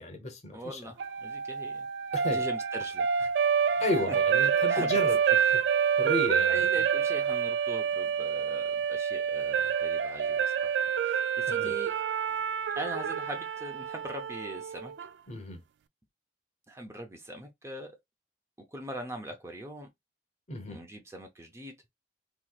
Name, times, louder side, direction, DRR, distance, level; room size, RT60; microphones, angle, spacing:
voice 1, 0.0-0.9 2.1-2.4 3.8-5.2 5.5-5.6 5.9-6.6 11.5-11.7 15.3-15.6 20.5-20.8, left 2 dB, 40° left, 0.9 m, -33 dB
voice 2, 0.5-1.9 2.3-3.3 3.9-4.2 4.7-4.9 5.3-5.4 5.9-6.0 6.5-10.7 11.0-11.9 12.8-14.9 16.7-18.0 18.7-19.9 20.7-21.8, right 1 dB, 15° right, 0.6 m, -41 dB
sound 1, 1.0-15.1, right 7 dB, 85° right, 0.3 m, -28 dB
3.0 x 3.0 x 2.3 m
head